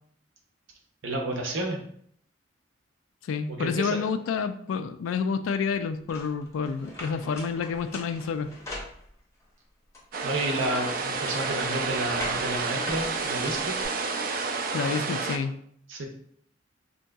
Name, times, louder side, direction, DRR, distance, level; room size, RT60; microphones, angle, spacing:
voice 1, 1.0-1.8 3.5-4.0 10.2-13.7 15.9-16.0, right 1 dB, 75° right, 2 dB, 0.7 m, -30 dB
voice 2, 3.3-8.5 14.7-15.5, left 5 dB, 85° left, 10 dB, 0.3 m, -29 dB
sound 1, 6.1-9.4 9.9-13.9, left 1 dB, 15° left, 0.6 m, -43 dB
sound 2, 10.1-15.4, right 4 dB, 45° right, 0.3 m, -30 dB
3.7 x 2.7 x 2.2 m, 0.65 s
head